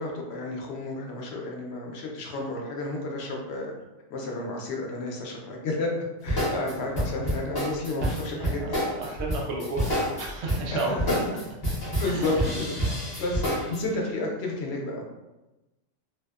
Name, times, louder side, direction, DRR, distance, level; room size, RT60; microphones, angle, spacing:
voice 1, 0.0-3.7 4.1-5.9 6.2-8.8 9.0-9.1 10.7-11.1 12.0-15.0, left 2 dB, 70° left, 0 dB, 0.8 m, -32 dB
sound 1, 6.3-13.8, equal, 25° left, 0.6 m, -28 dB
voice 2, 8.0-11.0 12.0-12.3, right 3 dB, 70° right, -1 dB, 0.9 m, -33 dB
2.7 x 2.0 x 2.3 m, 1.0 s
omnidirectional pair, 1.2 m